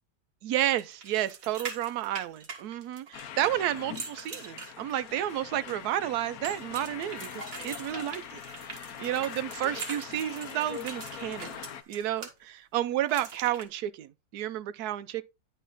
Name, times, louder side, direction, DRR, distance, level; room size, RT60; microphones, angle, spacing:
voice 1, 0.4-8.4 9.0-11.6 11.9-15.2, right 12 dB, 70° right, 1.0 m, -31 dB
sound 1, 0.8-3.3 3.8-5.2 6.4-12.3 13.1-13.6, right 5 dB, 50° right, 1.9 m, -43 dB
sound 2, 3.1-11.8, left 9 dB, 60° left, 1.0 m, -42 dB
10.0 x 4.2 x 4.0 m
omnidirectional pair, 2.0 m